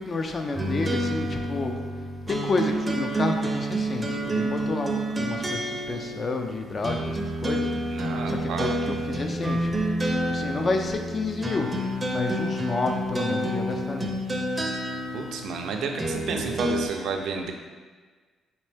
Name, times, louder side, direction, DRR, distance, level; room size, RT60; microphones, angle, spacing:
voice 1, 0.0-1.8 2.3-7.7 8.0-9.9 10.3-11.7 12.1-14.1, left 3 dB, 40° left, 4 dB, 0.5 m, -30 dB
sound 1, 0.5-16.9, right 1 dB, 20° right, 0.5 m, -29 dB
voice 2, 7.9-8.7 15.1-17.5, right 5 dB, 75° right, 3 dB, 0.4 m, -31 dB
4.2 x 3.5 x 3.3 m, 1.5 s
cardioid pair, 90°, 0 cm